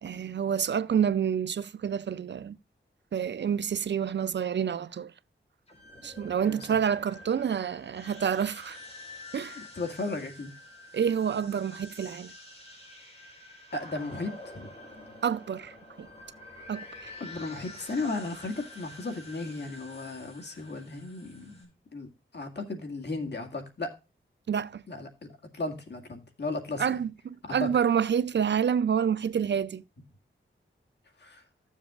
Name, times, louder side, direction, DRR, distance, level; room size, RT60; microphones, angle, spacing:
voice 1, 0.0-2.6 3.1-5.1 6.0-8.8 9.3-9.6 10.9-12.3 15.2-16.1 16.7-17.1 24.5-24.8 26.8-29.8, right 8 dB, 60° right, 0.4 m, -28 dB
sound 1, 5.7-21.6, left 2 dB, 30° left, 4.0 m, -48 dB
voice 2, 9.5-10.5 13.7-14.7 17.2-22.1 22.3-23.9 24.9-25.3 25.5-27.0 27.4-27.7 31.2-31.4, left 3 dB, 55° left, 2.1 m, -35 dB
14.5 x 7.3 x 2.4 m
wide cardioid pair, 85°, 21 cm